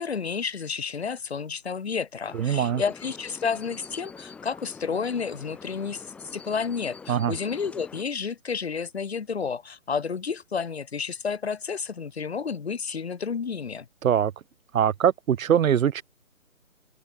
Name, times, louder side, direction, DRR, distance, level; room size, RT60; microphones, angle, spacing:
voice 1, 0.0-13.9, left 6 dB, 45° left, 2.0 m, -31 dB
sound 1, 2.2-8.0, left 5 dB, 5° left, 4.3 m, -45 dB
voice 2, 2.3-2.8 7.1-7.3 14.0-14.3 14.7-16.0, right 9 dB, 70° right, 0.6 m, -22 dB
hypercardioid pair, 175°, 42 cm